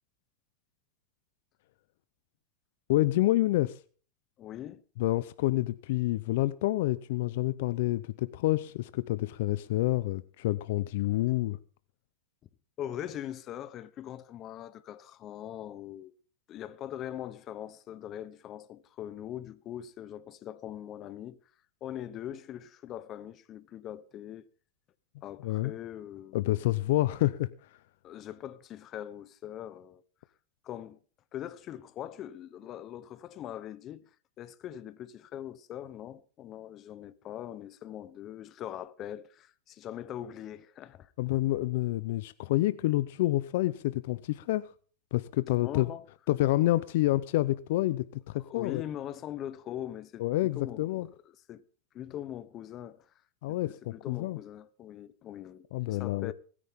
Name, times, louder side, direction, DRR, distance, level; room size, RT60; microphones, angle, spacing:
voice 1, 2.9-3.8 5.0-11.6 25.4-25.7 26.3-27.5 41.2-44.7 45.1-45.9 46.3-48.8 50.2-51.1 53.4-54.4 55.7-56.3, left 17 dB, 70° left, 0.7 m, -28 dB
voice 2, 4.4-4.8 12.8-16.1 16.5-21.4 21.8-24.5 25.2-26.4 28.0-30.0 30.6-31.0 31.3-34.0 34.4-41.1 45.6-46.0 48.4-50.2 50.5-51.1 51.5-51.6 51.9-53.1 53.6-56.3, left 11 dB, 35° left, 1.0 m, -41 dB
25.0 x 10.0 x 3.7 m
supercardioid pair, 130°, 0 cm